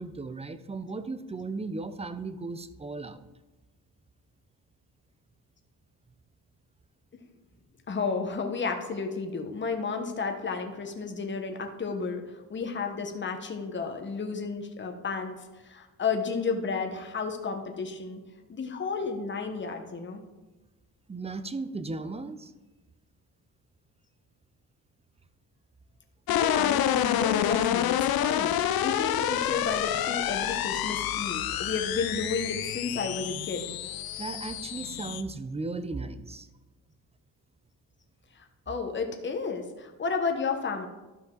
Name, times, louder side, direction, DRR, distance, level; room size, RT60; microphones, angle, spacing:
voice 1, 0.0-3.2 21.1-22.5 34.2-36.5, right 3 dB, 15° right, 12 dB, 0.6 m, -36 dB
voice 2, 7.9-15.3 15.6-18.2 18.5-20.2 26.3-33.7 38.3-40.9, left 4 dB, 30° left, 4 dB, 1.2 m, -32 dB
sound 1, 26.3-35.2, left 11 dB, 80° left, 0.6 m, -28 dB
12.5 x 5.5 x 3.9 m, 1.1 s
cardioid pair, 100°, 36 cm